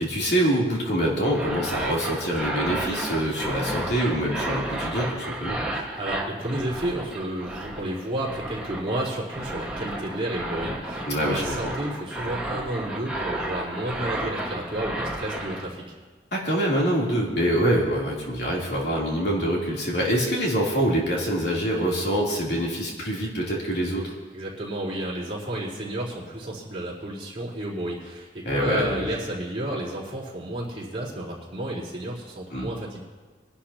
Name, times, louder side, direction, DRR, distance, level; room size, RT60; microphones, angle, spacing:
voice 1, 0.0-5.6 11.1-11.7 16.3-24.1 28.4-29.1 32.5-32.7, equal, 65° left, -4 dB, 3.2 m, -25 dB
sound 1, 1.2-15.7, right 1 dB, 5° right, 1.6 m, -32 dB
voice 2, 5.7-15.8 24.3-33.0, right 1 dB, 35° right, -6 dB, 4.1 m, -31 dB
24.5 x 11.5 x 2.9 m, 1.4 s
head